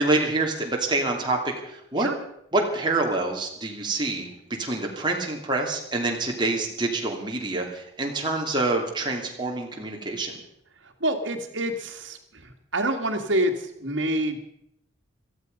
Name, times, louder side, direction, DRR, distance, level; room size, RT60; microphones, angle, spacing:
voice 1, 0.0-2.1 2.5-4.3 4.6-10.4, right 2 dB, 20° right, 0 dB, 2.8 m, -26 dB
voice 2, 11.0-14.4, right 1 dB, 70° right, 5 dB, 2.2 m, -27 dB
18.0 x 14.0 x 5.4 m, 0.75 s
head